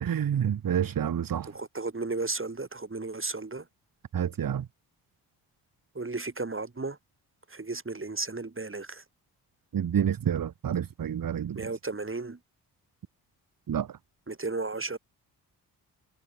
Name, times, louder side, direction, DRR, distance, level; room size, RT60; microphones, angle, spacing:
voice 1, 0.0-1.5 4.1-4.6 9.7-11.7 13.7-13.9, right 9 dB, 45° right, 1.4 m, -28 dB
voice 2, 1.5-3.6 5.9-7.0 7.5-9.0 11.6-12.4 14.3-15.0, right 3 dB, 25° right, 7.7 m, -34 dB
hypercardioid pair, 40°, 47 cm